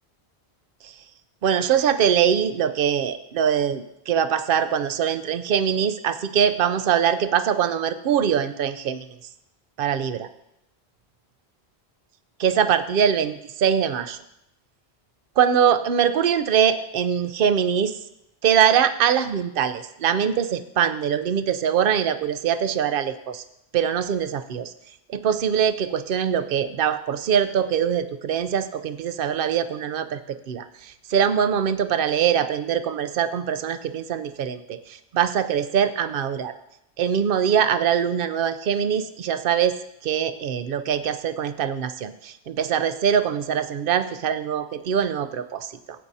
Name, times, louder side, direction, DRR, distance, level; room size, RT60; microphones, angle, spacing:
voice 1, 1.4-9.0 9.8-10.3 12.4-14.2 15.4-17.9 18.4-23.4 23.7-24.7 25.1-30.2 30.5-30.6 31.1-36.5 37.0-39.8 40.0-45.7, right 8 dB, 60° right, 11 dB, 0.8 m, -23 dB
16.5 x 8.6 x 2.7 m, 0.82 s
omnidirectional pair, 1.1 m